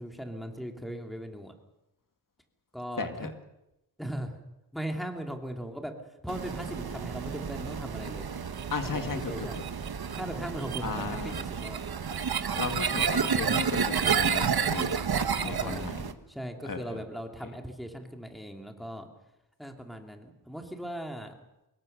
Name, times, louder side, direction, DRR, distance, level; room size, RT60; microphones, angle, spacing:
voice 1, 0.0-1.5 2.7-3.3 4.0-4.4 4.7-5.9 6.2-8.3 8.8-9.6 10.1-11.8 15.4-15.9 16.3-19.1 19.6-21.3, equal, ahead, 3 dB, 2.8 m, -38 dB
voice 2, 3.0-3.3 8.7-9.5 10.8-11.4 12.5-15.0 15.4-16.1 16.6-17.0, left 4 dB, 60° left, 6 dB, 2.0 m, -35 dB
sound 1, 6.3-16.1, right 7 dB, 90° right, 1.3 m, -30 dB
24.5 x 21.0 x 6.7 m, 0.93 s
wide cardioid pair, 105°, 36 cm